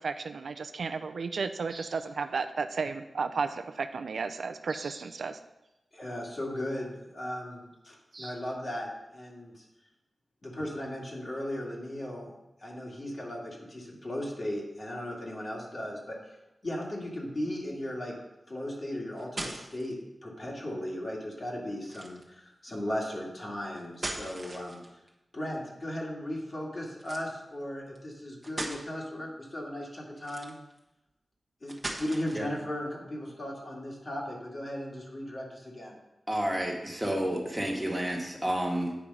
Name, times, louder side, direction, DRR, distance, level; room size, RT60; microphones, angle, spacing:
voice 1, 0.0-5.4, right 4 dB, 75° right, 8 dB, 0.4 m, -33 dB
sound 1, 1.7-2.0 4.2-4.3 4.7-5.1 5.6-5.7 8.1-8.3, right 3 dB, 50° right, 1.2 m, -46 dB
voice 2, 5.9-9.6 10.4-12.3 12.6-16.2 16.6-18.2 18.5-24.8 25.3-30.5 31.6-36.0, left 1 dB, 40° left, -3 dB, 2.0 m, -37 dB
sound 2, 18.9-19.9 21.8-22.3 23.8-25.1 27.0-27.3 28.0-28.1 28.4-28.8 30.2-30.8 31.7-32.5, right 1 dB, 25° right, 1.1 m, -39 dB
voice 3, 36.3-38.9, right 1 dB, 10° right, -1 dB, 1.5 m, -30 dB
8.8 x 4.8 x 5.4 m, 0.94 s
wide cardioid pair, 120°, 0 cm